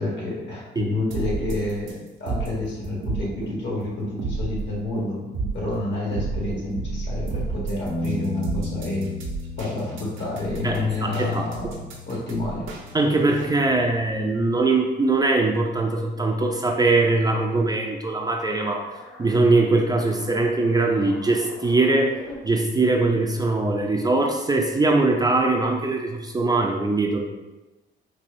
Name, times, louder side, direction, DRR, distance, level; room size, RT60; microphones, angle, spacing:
voice 1, 0.0-9.1 9.6-12.7, left 2 dB, 65° left, -4 dB, 1.5 m, -29 dB
sound 1, 1.1-13.4, right 4 dB, 85° right, 0.7 m, -31 dB
Bass guitar, 7.9-14.1, left 2 dB, 45° left, 0.9 m, -35 dB
voice 2, 10.6-11.7 12.9-18.9 19.2-22.2 22.4-27.2, right 2 dB, 20° right, 1 dB, 0.4 m, -21 dB
sound 2, 18.5-22.4, left 1 dB, 80° left, 0.8 m, -42 dB
4.2 x 2.7 x 2.6 m, 1.1 s
cardioid pair, 90°, 20 cm